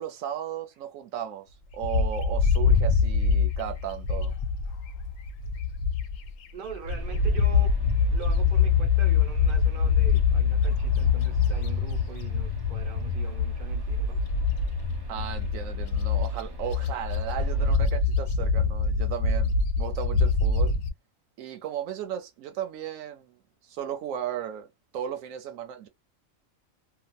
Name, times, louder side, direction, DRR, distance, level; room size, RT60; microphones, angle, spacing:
voice 1, 0.0-1.5 1.7-4.3 15.1-20.7 21.4-23.4 23.6-24.7 24.9-25.9, right 10 dB, 85° right, 1.0 m, -35 dB
Bird, 1.8-6.3 6.7-20.9, left 5 dB, 80° left, 1.0 m, -24 dB
voice 2, 6.5-7.8 8.1-14.3, right 6 dB, 45° right, 1.0 m, -42 dB
sound 1, 6.9-17.7, left 1 dB, 30° right, 0.5 m, -41 dB
2.8 x 2.4 x 2.2 m
omnidirectional pair, 1.4 m